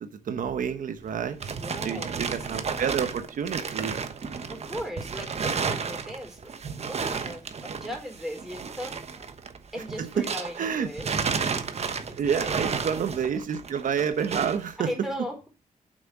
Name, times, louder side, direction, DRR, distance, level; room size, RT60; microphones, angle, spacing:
voice 1, 0.0-1.4 1.8-4.0 10.0-10.2 10.6-10.9 12.2-14.9, right 7 dB, 75° right, 9 dB, 1.0 m, -29 dB
sound 1, 1.0-10.6 10.9-14.7, right 5 dB, 50° right, 1.1 m, -32 dB
voice 2, 1.6-2.4 4.4-6.5 6.8-9.3 9.7-11.3 12.1-12.6 14.8-15.5, equal, ahead, 1 dB, 4.2 m, -38 dB
7.7 x 6.3 x 6.0 m, 0.32 s
wide cardioid pair, 115°, 14 cm